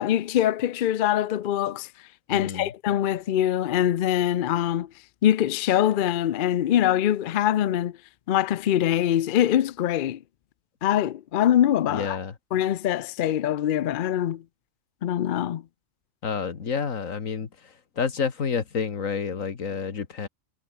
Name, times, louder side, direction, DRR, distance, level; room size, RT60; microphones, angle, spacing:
voice 1, 0.0-1.9 2.3-4.9 5.2-8.0 8.3-10.2 10.8-12.2 12.5-14.4 15.0-15.6, left 11 dB, 55° left, 0.6 m, -23 dB
voice 2, 2.3-2.7 11.9-12.3 16.2-20.3, left 6 dB, 85° left, 2.1 m, -29 dB
omnidirectional pair, 1.3 m